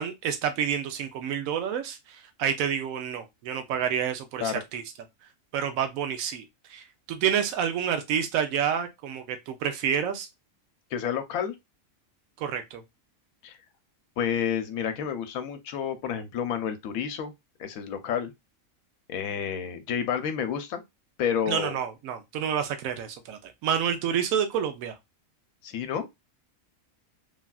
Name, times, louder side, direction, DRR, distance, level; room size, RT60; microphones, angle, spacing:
voice 1, 0.0-4.8 5.5-10.3 12.4-12.8 21.5-24.9, right 8 dB, 80° right, 1.0 m, -29 dB
voice 2, 10.9-11.6 13.4-13.6 14.2-17.3 17.6-18.3 19.1-20.8 21.2-21.7 25.6-26.2, left 8 dB, 90° left, 1.0 m, -30 dB
3.3 x 2.4 x 2.2 m
omnidirectional pair, 1.4 m